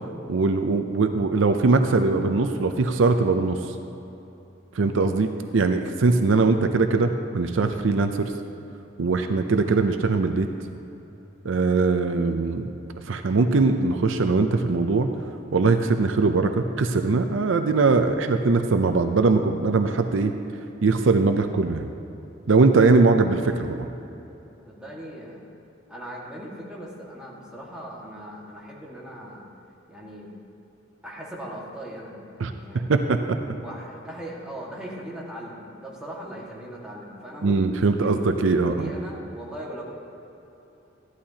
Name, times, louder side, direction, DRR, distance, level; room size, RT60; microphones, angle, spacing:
voice 1, 0.3-3.7 4.7-8.3 9.0-10.5 11.4-12.7 13.1-15.1 15.5-20.3 20.8-21.9 22.5-23.9 32.4-33.2 37.4-38.9, right 3 dB, 70° right, 7 dB, 0.5 m, -21 dB
voice 2, 24.7-25.4 25.9-29.4 29.9-30.3 31.0-32.9 33.5-37.6 37.9-38.2 38.7-39.8, right 1 dB, 5° right, -5 dB, 1.7 m, -39 dB
14.5 x 11.5 x 2.9 m, 3.0 s
head